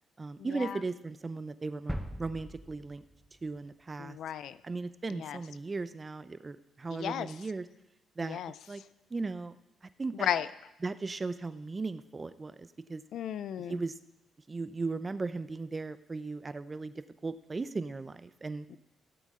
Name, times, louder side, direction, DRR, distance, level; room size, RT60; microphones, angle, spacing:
voice 1, 0.2-3.0 3.4-4.2 4.6-7.7 8.2-8.4 8.7-8.8 9.1-9.5 10.0-10.3 10.8-13.0 13.7-13.9 14.5-18.6, right 3 dB, 25° right, 13 dB, 0.6 m, -37 dB
sound 1, 1.9-3.8 4.2-4.3, equal, ahead, 1.0 m, -41 dB
voice 2, 4.0-4.6 5.1-5.4 6.9-7.3 8.2-8.5 10.2-10.5 13.1-13.8 18.7-18.8, left 9 dB, 75° left, 15 dB, 0.4 m, -34 dB
15.5 x 8.4 x 3.7 m, 0.89 s
cardioid pair, 90°, 0 cm